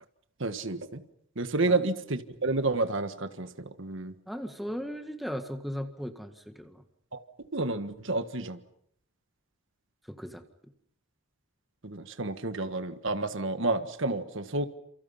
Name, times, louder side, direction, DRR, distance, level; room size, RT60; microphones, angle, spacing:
voice 1, 0.4-1.0 1.3-4.1 7.1-7.2 7.5-8.6 11.8-14.7, right 2 dB, 55° right, 9 dB, 1.5 m, -30 dB
voice 2, 4.3-6.8 10.1-10.4, equal, ahead, 6 dB, 1.8 m, -37 dB
30.0 x 28.0 x 5.7 m, 0.70 s
head